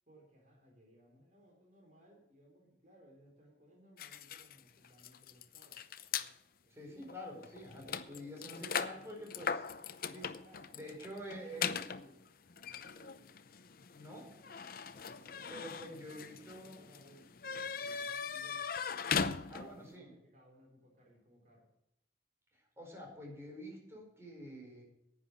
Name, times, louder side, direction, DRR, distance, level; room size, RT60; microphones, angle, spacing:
voice 1, 0.1-6.3 6.6-7.1 8.1-9.3 9.9-13.3 14.8-18.7 19.1-21.7, equal, 45° right, -1 dB, 4.0 m, -63 dB
sound 1, 4.0-6.3 7.0-7.2 7.4-19.9, left 6 dB, 55° left, 0.7 m, -40 dB
voice 2, 6.7-9.6 10.1-10.2 10.7-11.7 13.9-14.3 15.5-16.8 19.5-20.1 22.5-24.8, equal, 15° right, 0 dB, 4.8 m, -47 dB
11.0 x 9.6 x 6.5 m, 0.84 s
head